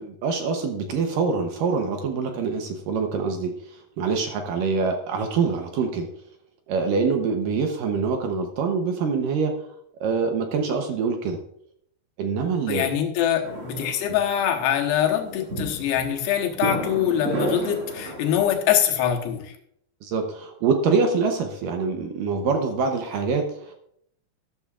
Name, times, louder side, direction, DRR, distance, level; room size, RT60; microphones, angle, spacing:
voice 1, 0.0-6.1 6.7-9.5 10.0-11.4 12.2-12.9 20.0-23.7, right 5 dB, 70° right, 4 dB, 2.2 m, -25 dB
voice 2, 12.7-19.5, left 10 dB, 85° left, 3 dB, 3.2 m, -24 dB
sound 1, 13.4-18.4, right 2 dB, 40° right, 2.5 m, -32 dB
13.0 x 12.0 x 2.5 m, 0.70 s
omnidirectional pair, 4.7 m